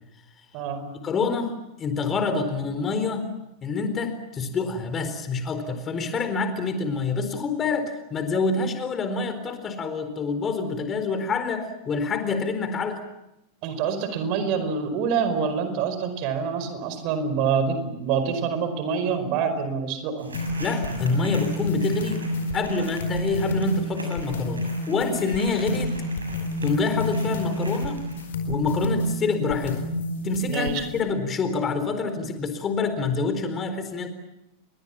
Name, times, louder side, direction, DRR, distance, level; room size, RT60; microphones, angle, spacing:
voice 1, 0.5-0.9 13.6-20.4 30.5-30.8, right 6 dB, 45° right, 10 dB, 4.9 m, -26 dB
voice 2, 1.0-3.3 3.6-13.0 20.6-22.3 22.5-26.0 26.6-28.0 28.5-29.8 30.2-34.1, left 4 dB, 25° left, 8 dB, 4.1 m, -27 dB
sound 1, 20.2-28.3, right 2 dB, 75° right, 7.2 m, -43 dB
sound 2, 20.3-31.0, left 1 dB, 60° left, 4.5 m, -29 dB
29.5 x 23.5 x 7.5 m, 0.90 s
figure-of-eight pair, 90°, 0 cm